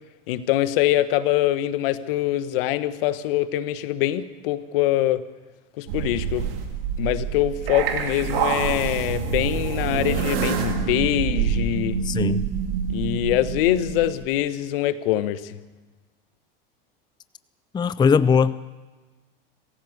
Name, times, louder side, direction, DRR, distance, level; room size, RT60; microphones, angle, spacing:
voice 1, 0.3-5.2 5.8-6.5 7.0-12.0 12.9-15.6, left 14 dB, 70° left, 1.4 m, -24 dB
sound 1, 5.9-14.1, right 7 dB, 70° right, 3.0 m, -26 dB
voice 2, 12.0-12.4 17.7-18.6, left 6 dB, 15° left, 0.6 m, -20 dB
27.0 x 15.5 x 6.7 m
hypercardioid pair, 95°, 30 cm